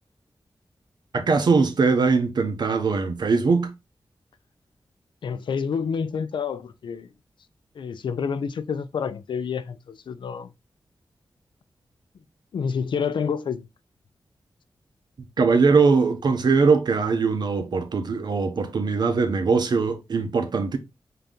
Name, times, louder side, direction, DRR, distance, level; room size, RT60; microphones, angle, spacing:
voice 1, 1.1-3.7 15.4-20.8, right 4 dB, 60° right, 0.7 m, -21 dB
voice 2, 5.2-7.1 7.8-10.5 12.5-13.7, left 6 dB, 80° left, 0.4 m, -28 dB
3.9 x 2.8 x 3.4 m
wide cardioid pair, 170°, 8 cm